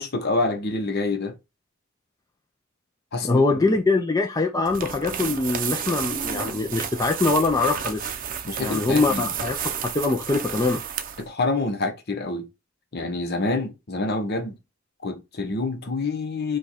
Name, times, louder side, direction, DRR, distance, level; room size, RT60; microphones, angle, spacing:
voice 1, 0.0-1.4 3.1-3.6 8.4-9.3 11.3-12.5 12.9-14.6 15.0-16.6, left 3 dB, 55° left, 0.9 m, -27 dB
voice 2, 3.2-8.1 8.6-9.6 9.8-10.8, left 3 dB, 20° left, 0.5 m, -23 dB
sound 1, 4.7-11.3, right 8 dB, 45° right, 0.6 m, -31 dB
5.1 x 2.4 x 4.2 m
head